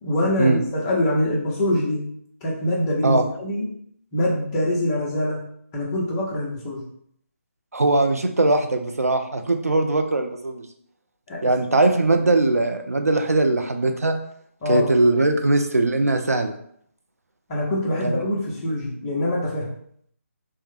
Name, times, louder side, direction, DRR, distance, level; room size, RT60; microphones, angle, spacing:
voice 1, 0.0-2.1 2.4-3.6 4.1-5.4 5.7-6.9 11.3-11.4 14.6-14.9 17.5-19.7, left 1 dB, 20° left, -4 dB, 0.8 m, -24 dB
voice 2, 7.7-10.7 11.4-14.1 14.7-16.5 18.0-18.2, right 2 dB, 85° right, 5 dB, 0.5 m, -20 dB
3.5 x 2.1 x 3.2 m, 0.67 s
figure-of-eight pair, 150°, 8 cm